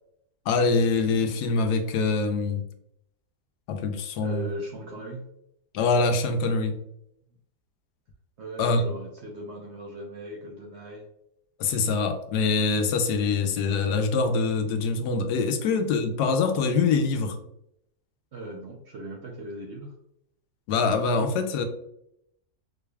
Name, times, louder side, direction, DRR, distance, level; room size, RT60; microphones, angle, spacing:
voice 1, 0.5-2.6 3.7-4.5 5.7-6.8 8.6-8.8 11.6-17.3 20.7-21.6, left 4 dB, 90° left, 6 dB, 1.2 m, -24 dB
voice 2, 4.2-5.2 8.4-11.0 15.6-15.7 18.3-19.9, right 1 dB, 65° right, 0 dB, 0.7 m, -38 dB
4.1 x 3.2 x 2.3 m, 0.78 s
omnidirectional pair, 1.7 m